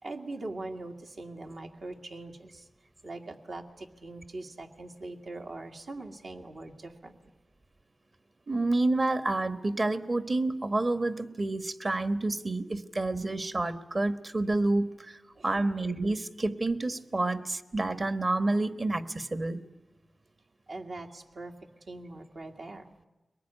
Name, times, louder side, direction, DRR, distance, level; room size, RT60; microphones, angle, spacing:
voice 1, 0.0-2.7 3.0-7.3 15.4-15.5 20.7-21.5 21.9-22.9, right 2 dB, 75° right, 2 dB, 2.0 m, -42 dB
voice 2, 8.5-19.6, right 2 dB, 45° right, 11 dB, 1.3 m, -29 dB
22.5 x 20.0 x 9.9 m, 1.1 s
wide cardioid pair, 65°, 0 cm